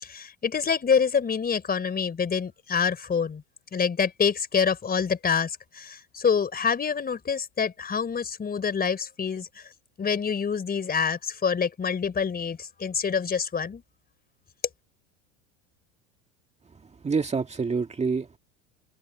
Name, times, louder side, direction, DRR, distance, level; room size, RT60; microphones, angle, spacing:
voice 1, 0.0-3.4 3.7-9.6 10.0-13.8, left 6 dB, 25° left, 4.0 m, -26 dB
voice 2, 16.8-18.4, right 5 dB, 15° right, 1.8 m, -27 dB
hypercardioid pair, 90°, 38 cm